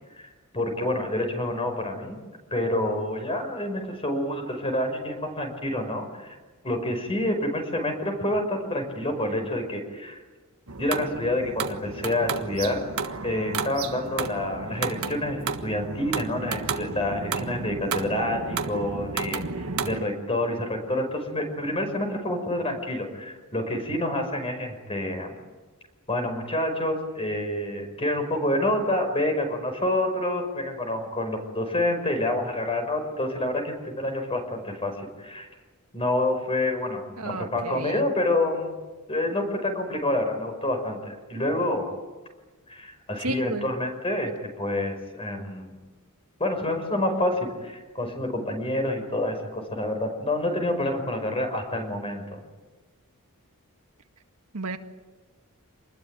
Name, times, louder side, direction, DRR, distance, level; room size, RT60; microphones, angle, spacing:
voice 1, 0.2-2.2 2.5-6.3 6.6-10.2 10.8-12.8 13.2-25.4 26.1-35.5 35.9-38.8 39.1-41.9 42.7-45.8 46.4-52.4, left 1 dB, 25° left, 5 dB, 5.5 m, -28 dB
sound 1, 10.7-20.0, right 4 dB, 70° right, 1.5 m, -32 dB
voice 2, 37.2-38.1 43.2-43.7 54.5-54.8, right 3 dB, 90° right, 6 dB, 1.8 m, -33 dB
27.0 x 20.5 x 9.1 m, 1.3 s
head